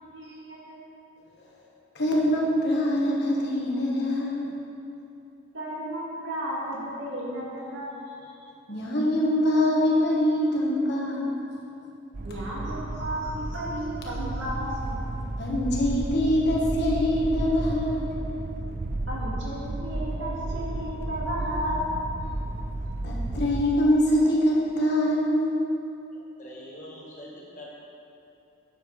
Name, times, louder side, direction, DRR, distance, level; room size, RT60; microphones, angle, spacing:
voice 1, 0.1-0.8 5.5-8.4 12.2-15.0 19.1-21.9, equal, 65° right, -6 dB, 2.0 m, -34 dB
voice 2, 1.9-4.5 8.7-11.2 15.4-18.1 23.0-25.6, left 1 dB, 55° left, -4 dB, 1.5 m, -24 dB
sound 1, 12.1-23.6, right 2 dB, 40° right, 0.5 m, -32 dB
voice 3, 26.4-27.7, equal, 40° left, -5 dB, 1.6 m, -43 dB
9.4 x 7.5 x 3.3 m, 2.8 s
head